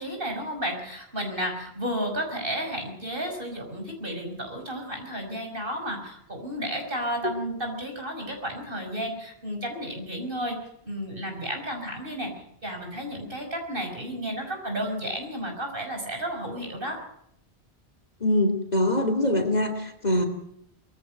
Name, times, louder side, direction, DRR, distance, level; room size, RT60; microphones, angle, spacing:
voice 1, 0.0-10.6 10.8-12.3 12.6-17.0, equal, 55° right, 3 dB, 5.8 m, -32 dB
voice 2, 18.2-20.2, left 1 dB, 40° left, 5 dB, 3.0 m, -23 dB
22.0 x 15.5 x 9.1 m, 0.74 s
omnidirectional pair, 1.1 m